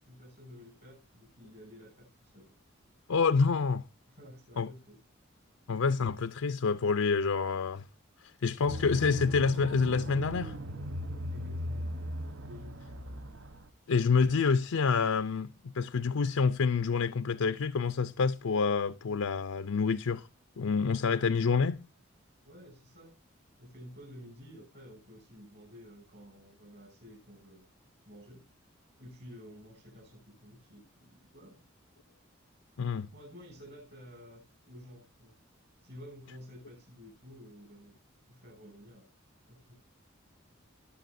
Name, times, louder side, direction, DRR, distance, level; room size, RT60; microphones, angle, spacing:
voice 1, 0.0-2.5 4.0-5.0 11.3-12.0 12.4-12.9 22.4-23.2 23.6-27.6 28.1-28.5 29.0-31.6 32.8-35.4 35.8-37.9 38.3-39.1 39.5-39.7, equal, 55° right, 6.3 m, -51 dB
voice 2, 3.1-3.8 4.6-4.7 5.7-7.8 8.4-10.5 13.9-15.5 15.7-20.2 20.6-21.8 32.8-33.1, left 5 dB, 85° left, 0.5 m, -27 dB
sound 1, 8.7-13.7, equal, 70° right, 0.9 m, -38 dB
20.0 x 7.0 x 2.6 m
head